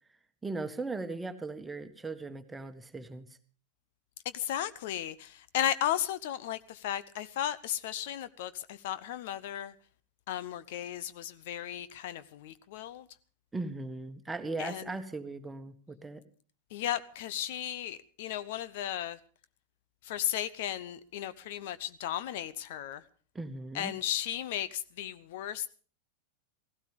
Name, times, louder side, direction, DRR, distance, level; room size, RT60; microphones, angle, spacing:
voice 1, 0.4-3.3 13.5-16.2 23.3-24.0, right 3 dB, 10° right, 1.5 m, -38 dB
voice 2, 4.3-9.7 10.3-13.0 14.6-14.8 16.7-19.2 20.0-23.0 23.7-25.7, left 11 dB, 50° left, 0.8 m, -35 dB
17.0 x 16.5 x 5.1 m
figure-of-eight pair, 90°, 0 cm